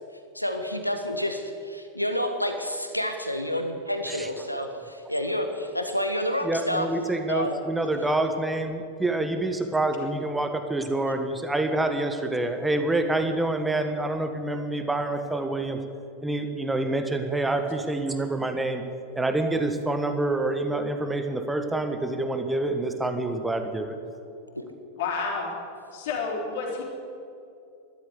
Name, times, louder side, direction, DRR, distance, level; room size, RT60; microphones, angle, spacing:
voice 1, 0.3-6.9 7.3-7.5 24.5-24.6, equal, 90° left, 6 dB, 1.2 m, -29 dB
voice 2, 6.4-15.8 16.2-18.8 19.1-24.0, right 2 dB, 5° right, 7 dB, 1.4 m, -27 dB
voice 3, 25.0-25.5 25.9-26.8, left 4 dB, 55° left, 0 dB, 3.7 m, -29 dB
13.0 x 12.5 x 8.2 m, 2.6 s
figure-of-eight pair, 90°, 0 cm